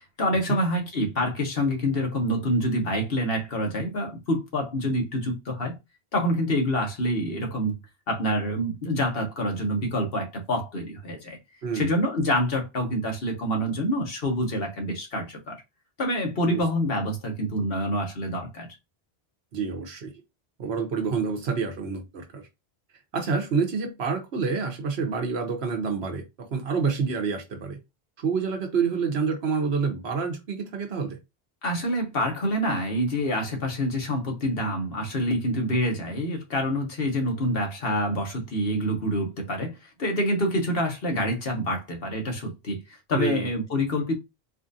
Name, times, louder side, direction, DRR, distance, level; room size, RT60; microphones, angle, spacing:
voice 1, 0.0-5.8 6.1-7.8 8.1-11.4 11.7-15.6 16.0-18.7 31.6-42.8 43.1-44.1, equal, 70° left, 1.4 m, -27 dB
voice 2, 19.5-20.1 20.6-22.4 23.1-26.2 26.5-27.8 28.2-31.2 43.1-43.5, right 5 dB, 85° right, 1.2 m, -27 dB
4.2 x 2.5 x 2.6 m
omnidirectional pair, 1.0 m